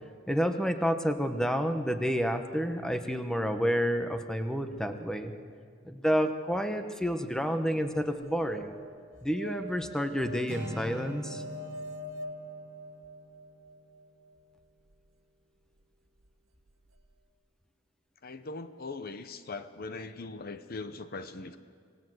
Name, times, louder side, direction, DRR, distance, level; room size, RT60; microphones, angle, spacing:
voice 1, 0.3-5.3 5.8-8.7 9.2-11.4, equal, 5° left, 7 dB, 1.1 m, -29 dB
sound 1, 8.2-14.4 16.7-16.8 17.0-17.1, equal, 90° right, 1.2 m, -45 dB
Acoustic guitar, 10.5-14.4, equal, 10° right, 5.8 m, -45 dB
voice 2, 18.2-21.6, left 3 dB, 50° left, 11 dB, 0.8 m, -40 dB
26.5 x 17.5 x 7.9 m, 2.1 s
head